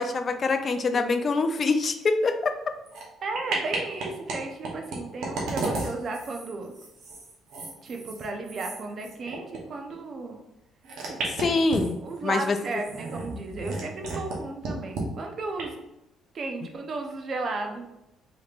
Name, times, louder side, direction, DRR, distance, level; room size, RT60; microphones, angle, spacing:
voice 1, 0.0-2.5 11.4-12.0 12.2-12.6, left 3 dB, 45° left, 8 dB, 0.3 m, -24 dB
sound 1, 2.9-3.1 3.3-4.4 4.6-9.6 9.9-10.0 10.8-12.1 12.7-14.4 14.6-15.0 15.6-15.7, right 3 dB, 75° right, 0.8 m, -33 dB
voice 2, 3.2-6.7 7.8-10.4 11.1-11.6 12.0-15.8 16.3-17.9, right 3 dB, 50° right, 3 dB, 0.6 m, -34 dB
3.2 x 2.9 x 2.4 m, 0.90 s
supercardioid pair, 70°, 0 cm